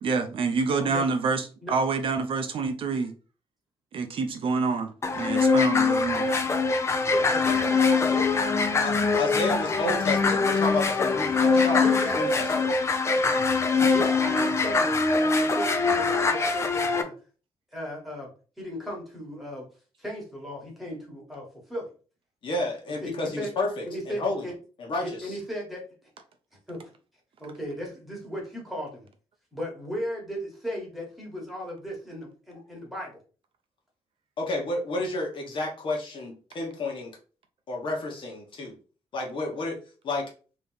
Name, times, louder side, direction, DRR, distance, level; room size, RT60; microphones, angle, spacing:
voice 1, 0.0-3.1 3.9-6.3, right 4 dB, 55° right, 0.5 m, -27 dB
sound 1, 5.0-17.0, left 4 dB, 25° left, 0.5 m, -23 dB
voice 2, 7.1-8.4 11.8-12.2 13.7-17.1 17.7-18.3 18.6-19.7 20.0-21.9 23.0-23.5 23.8-24.5 25.0-25.9 26.7-26.8 27.4-29.1 29.5-33.2, equal, ahead, 1.4 m, -36 dB
voice 3, 8.8-12.7 22.4-24.5 24.8-25.4 32.5-32.6 34.4-37.1 37.7-38.8 39.1-39.8 40.0-40.3, left 2 dB, 50° left, 1.1 m, -31 dB
3.4 x 2.9 x 3.9 m
wide cardioid pair, 170°, 11 cm